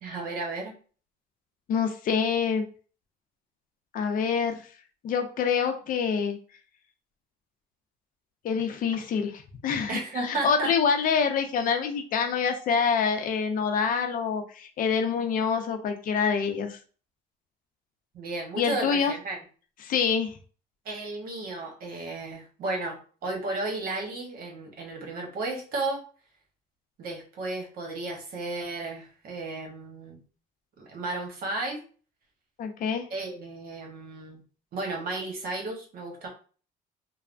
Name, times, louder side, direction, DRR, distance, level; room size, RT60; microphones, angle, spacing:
voice 1, 0.0-0.7 9.9-10.7 18.1-19.4 20.8-26.0 27.0-30.2 30.8-31.8 33.1-34.4 34.7-36.3, right 2 dB, 60° right, 1 dB, 1.0 m, -33 dB
voice 2, 1.7-2.6 3.9-4.6 5.0-6.4 8.4-16.8 18.6-19.1 19.8-20.3 32.6-33.0, left 6 dB, 55° left, 6 dB, 0.5 m, -26 dB
3.2 x 2.0 x 2.4 m, 0.39 s
cardioid pair, 110°, 17 cm